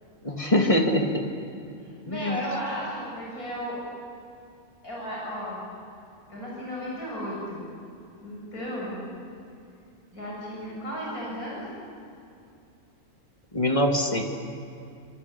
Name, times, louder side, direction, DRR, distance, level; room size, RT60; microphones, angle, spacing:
voice 1, 0.2-1.2 2.0-2.4 13.5-14.2, left 1 dB, 25° left, 2 dB, 2.4 m, -23 dB
voice 2, 1.8-3.8 4.8-5.6 6.3-7.7 8.2-9.0 10.1-11.7, equal, 80° left, -5 dB, 7.8 m, -34 dB
27.0 x 25.5 x 8.5 m, 2.6 s
omnidirectional pair, 1.5 m